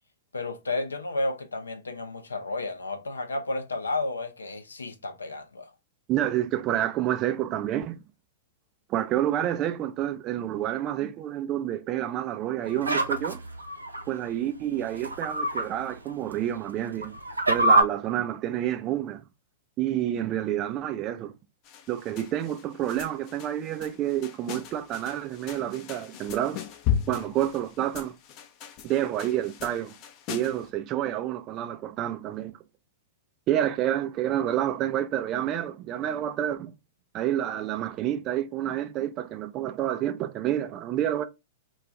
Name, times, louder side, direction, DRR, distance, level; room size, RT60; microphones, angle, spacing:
voice 1, 0.3-5.7, left 2 dB, 85° left, 0.6 m, -32 dB
voice 2, 6.1-8.0 8.9-13.4 14.1-17.2 17.5-19.2 19.8-21.3 21.9-26.6 27.1-28.2 28.8-29.9 30.3-32.5 33.5-36.7 37.1-41.2, right 12 dB, 35° right, 0.4 m, -29 dB
sound 1, 12.7-14.0 14.9-15.6 16.1-16.2 16.9-17.8, right 1 dB, 90° right, 0.5 m, -24 dB
sound 2, 21.6-30.7, left 9 dB, 40° left, 0.5 m, -36 dB
2.3 x 2.3 x 3.9 m
figure-of-eight pair, 105°, 0 cm